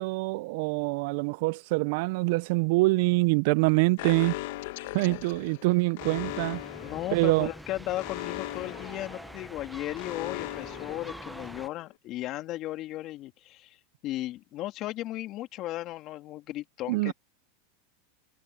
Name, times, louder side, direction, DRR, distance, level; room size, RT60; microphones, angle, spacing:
voice 1, 0.0-4.3 4.9-6.6 7.1-7.5 16.9-17.1, right 25 dB, 60° right, 0.4 m, -25 dB
Alarm, 4.0-11.7, left 18 dB, 65° left, 1.4 m, -39 dB
voice 2, 5.0-5.6 6.8-13.8 14.0-17.1, left 15 dB, 45° left, 2.9 m, -36 dB
sound 1, 6.0-11.7, right 1 dB, ahead, 0.9 m, -45 dB
supercardioid pair, 125°, 0 cm